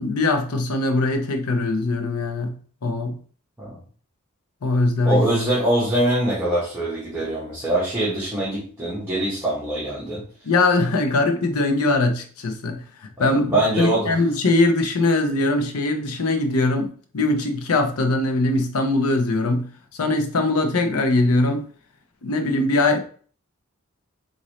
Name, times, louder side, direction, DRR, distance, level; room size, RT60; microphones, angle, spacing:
voice 1, 0.0-3.2 4.6-5.3 10.4-19.7 20.0-21.7 22.2-23.0, left 2 dB, 85° left, 6 dB, 0.7 m, -21 dB
voice 2, 5.0-10.2 13.3-14.1, right 1 dB, 10° right, -9 dB, 1.1 m, -23 dB
3.9 x 2.6 x 3.0 m, 0.44 s
head